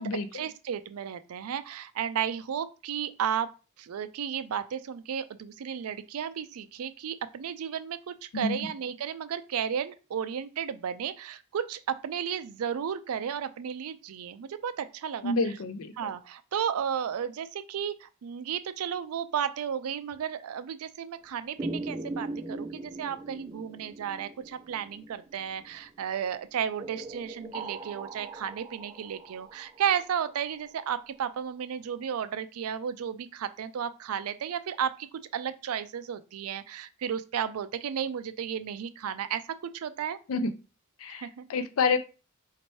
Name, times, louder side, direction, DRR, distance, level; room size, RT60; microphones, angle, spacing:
voice 1, 0.3-15.3 16.0-35.1 35.3-40.2 41.2-41.4, right 8 dB, 85° right, 12 dB, 0.4 m, -33 dB
voice 2, 8.3-8.7 15.2-16.1 40.3-40.5 41.0-42.0, left 3 dB, 70° left, 11 dB, 0.5 m, -28 dB
sound 1, 21.6-25.8 26.8-30.6, right 2 dB, 20° right, 0.4 m, -40 dB
4.3 x 2.8 x 3.0 m, 0.32 s
head